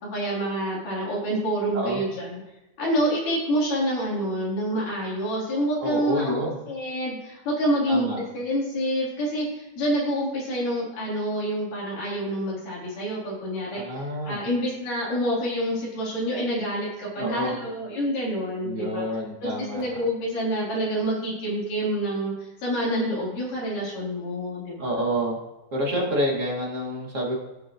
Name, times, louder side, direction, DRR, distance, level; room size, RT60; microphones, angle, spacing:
voice 1, 0.0-2.4 2.8-19.0 19.4-24.9, equal, 90° left, -6 dB, 5.1 m, -27 dB
voice 2, 5.8-6.6 7.9-8.2 13.7-14.4 17.2-17.5 18.6-19.8 24.8-25.4 25.7-27.4, equal, 25° right, -2 dB, 2.0 m, -28 dB
17.5 x 6.2 x 3.1 m, 1.1 s
omnidirectional pair, 3.6 m